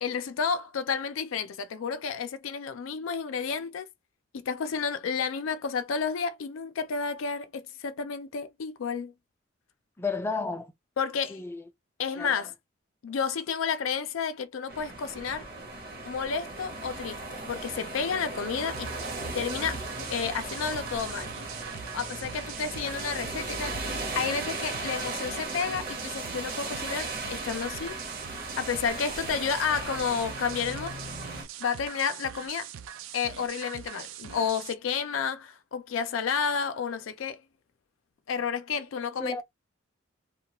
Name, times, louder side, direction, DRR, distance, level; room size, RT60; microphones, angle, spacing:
voice 1, 0.0-3.9 4.4-9.1 11.0-11.4 12.0-12.5 13.0-15.5 16.0-17.2 17.5-18.9 19.3-21.3 21.9-23.8 24.1-28.0 28.6-31.0 31.6-32.7 33.1-37.4 38.3-39.4, left 6 dB, 90° left, 0.4 m, -31 dB
voice 2, 10.0-10.7 11.3-11.6 12.2-12.4 39.2-39.4, left 4 dB, 10° left, 0.3 m, -32 dB
sound 1, 14.7-31.4, right 2 dB, 50° right, 0.8 m, -37 dB
sound 2, 18.7-34.7, right 9 dB, 85° right, 0.4 m, -43 dB
2.3 x 2.2 x 2.8 m
head